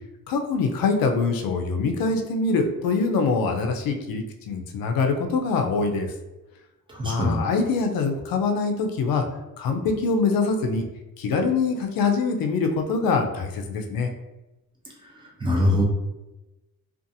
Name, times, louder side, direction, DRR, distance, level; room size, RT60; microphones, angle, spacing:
voice 1, 0.3-6.1 7.0-9.2 9.6-10.8 11.2-14.1, left 4 dB, 75° left, 5 dB, 0.5 m, -24 dB
voice 2, 7.0-7.4 15.4-15.8, left 1 dB, 15° right, -3 dB, 0.5 m, -21 dB
2.5 x 2.4 x 2.6 m, 1.0 s
wide cardioid pair, 170°, 35 cm